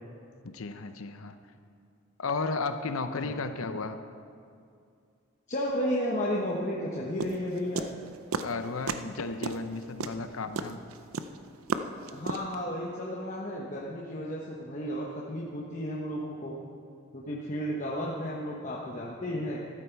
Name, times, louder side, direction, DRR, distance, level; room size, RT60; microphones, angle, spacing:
voice 1, 0.4-1.4 2.2-4.0 8.4-10.8, left 3 dB, 80° left, 9 dB, 0.7 m, -34 dB
voice 2, 5.5-7.9 12.1-16.6 17.1-19.6, equal, 35° left, -4 dB, 1.1 m, -33 dB
sound 1, 7.2-8.6 8.9-9.2 9.4-12.6, right 4 dB, 85° right, 0.6 m, -32 dB
13.5 x 11.5 x 4.6 m, 2.3 s
head